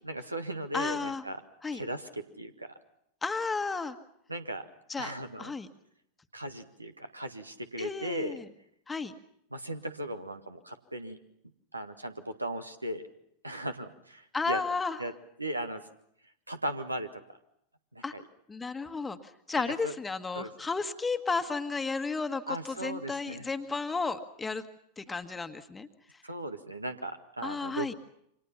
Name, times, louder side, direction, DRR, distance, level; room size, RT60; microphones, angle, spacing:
voice 1, 0.0-1.4 1.7-2.7 4.3-4.7 5.0-5.5 6.3-8.4 9.5-11.2 11.7-13.1 13.4-14.6 15.0-15.1 15.4-15.8 16.5-17.4 17.9-18.2 19.8-20.0 20.3-20.5 22.5-23.5 26.2-27.9, right 1 dB, 85° right, 8 dB, 1.8 m, -37 dB
voice 2, 0.7-1.2 1.6-1.8 3.2-4.0 4.9-5.1 5.4-5.7 7.8-8.4 8.9-9.1 14.3-15.0 18.0-18.1 18.5-19.2 19.5-24.6 25.0-25.9 27.4-27.9, left 4 dB, 10° left, 9 dB, 1.6 m, -33 dB
29.0 x 25.5 x 5.8 m, 0.75 s
figure-of-eight pair, 90°, 0 cm